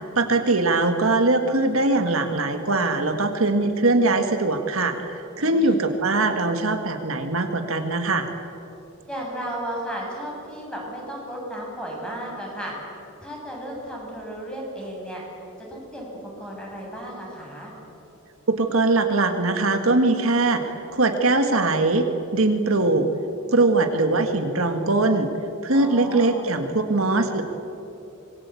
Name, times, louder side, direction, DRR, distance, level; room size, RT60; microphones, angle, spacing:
voice 1, 0.2-8.3 18.6-22.1 22.3-23.1 23.5-25.3 25.6-27.4, right 2 dB, 70° right, 6 dB, 1.7 m, -21 dB
voice 2, 5.4-5.8 9.1-12.7 13.2-15.2 15.6-16.1 16.4-17.7 25.7-26.4, right 1 dB, 5° left, -3 dB, 7.8 m, -34 dB
25.5 x 21.5 x 8.4 m, 2.9 s
head